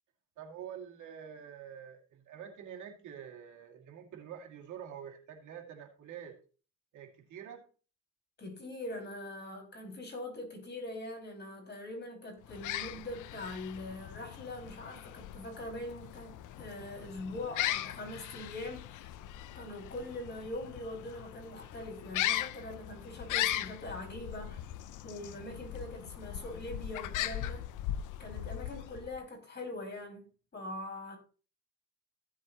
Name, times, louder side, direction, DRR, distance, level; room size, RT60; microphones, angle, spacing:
voice 1, 0.4-6.4 6.9-7.6, right 8 dB, 80° right, 2.5 m, -47 dB
voice 2, 8.4-19.1 19.5-24.7 25.0-27.7 28.2-31.2, left 1 dB, 35° left, 5.7 m, -42 dB
sound 1, 12.4-29.2, left 13 dB, 80° left, 0.6 m, -39 dB
15.5 x 7.5 x 3.0 m
cardioid pair, 90°, 30 cm